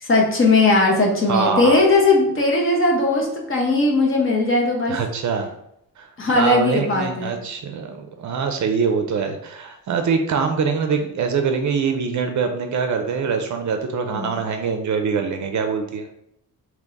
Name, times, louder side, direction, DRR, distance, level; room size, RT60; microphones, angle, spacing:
voice 1, 0.0-5.0 6.2-7.4 14.1-14.3, left 2 dB, 35° left, -1 dB, 1.0 m, -18 dB
voice 2, 1.3-1.8 4.9-5.5 6.0-16.1, right 5 dB, 50° right, 6 dB, 0.5 m, -23 dB
3.6 x 2.9 x 3.9 m, 0.75 s
wide cardioid pair, 155°, 37 cm